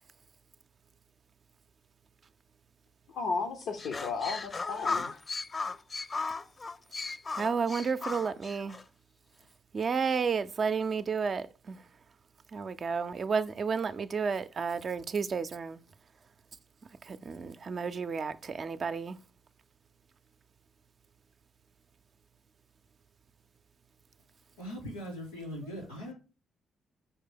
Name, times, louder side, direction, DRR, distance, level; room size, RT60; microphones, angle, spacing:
voice 1, 3.1-5.2, left 4 dB, 70° left, 0.7 m, -34 dB
sound 1, 3.8-8.8, left 4 dB, 40° left, 0.4 m, -36 dB
voice 2, 7.4-8.8 9.7-11.8 12.5-15.8 17.1-19.2, right 5 dB, 50° right, 0.5 m, -31 dB
voice 3, 24.6-26.1, equal, 90° left, 3.7 m, -40 dB
5.8 x 3.3 x 5.6 m
hypercardioid pair, 45°, 0 cm